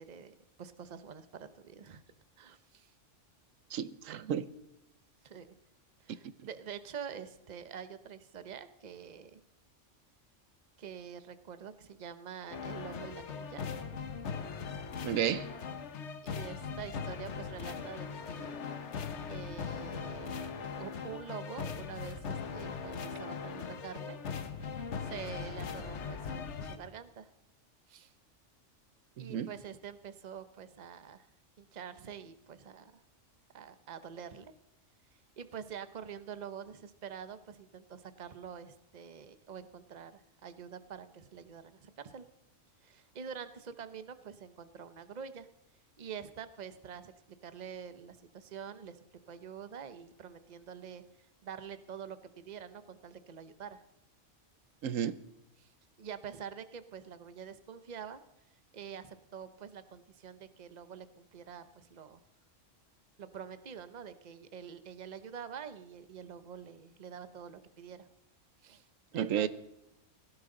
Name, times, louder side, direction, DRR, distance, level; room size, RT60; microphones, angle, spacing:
voice 1, 0.0-2.0 2.4-2.9 5.2-5.5 6.0-9.4 10.8-13.7 16.2-18.6 19.3-24.2 25.0-27.3 27.9-28.1 29.2-31.3 31.6-33.0 33.5-34.5 35.1-42.3 42.8-45.5 46.0-47.1 47.4-51.0 51.4-53.8 55.6-55.7 56.0-58.2 58.7-62.2 63.2-68.1 68.6-68.8 69.1-69.5, right 7 dB, 40° right, 0.9 m, -46 dB
voice 2, 3.7-4.5 15.0-15.5 29.2-29.5 54.8-55.2 69.1-69.5, right 9 dB, 90° right, 1.1 m, -32 dB
sound 1, 12.5-26.8, left 6 dB, 65° left, 1.3 m, -40 dB
17.5 x 16.0 x 3.9 m
omnidirectional pair, 1.3 m